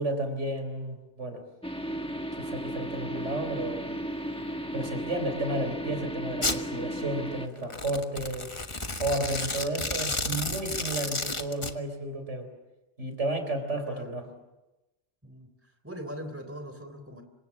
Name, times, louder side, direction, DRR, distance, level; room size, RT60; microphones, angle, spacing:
voice 1, 0.0-1.4 2.4-4.0 4.7-8.5 9.0-12.5 13.0-14.3, right 1 dB, 85° right, 7 dB, 4.5 m, -32 dB
sound 1, 1.6-7.5, equal, 5° left, 1.5 m, -35 dB
Domestic sounds home sounds, 6.4-6.6 7.6-11.7, left 2 dB, 25° left, 1.4 m, -32 dB
voice 2, 9.5-10.1 13.7-14.3 15.2-17.2, equal, 10° right, 7 dB, 3.5 m, -42 dB
26.5 x 25.0 x 7.4 m, 1.0 s
omnidirectional pair, 1.2 m